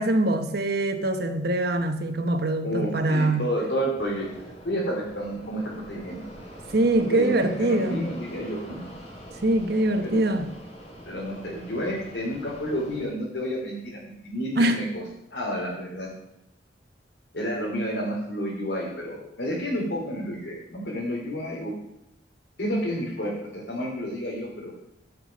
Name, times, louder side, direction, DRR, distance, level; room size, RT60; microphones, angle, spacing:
voice 1, 0.0-3.5 6.7-8.1 9.4-10.5 14.6-14.8, right 1 dB, 60° right, 7 dB, 1.1 m, -23 dB
voice 2, 2.6-6.2 7.1-8.8 10.0-10.2 11.1-15.0 15.3-16.1 17.3-21.7 22.6-24.7, equal, 70° left, -5 dB, 2.8 m, -30 dB
Fixed-wing aircraft airplane, 4.0-13.0, equal, 35° left, 2.7 m, -44 dB
14.5 x 6.1 x 5.1 m, 0.85 s
head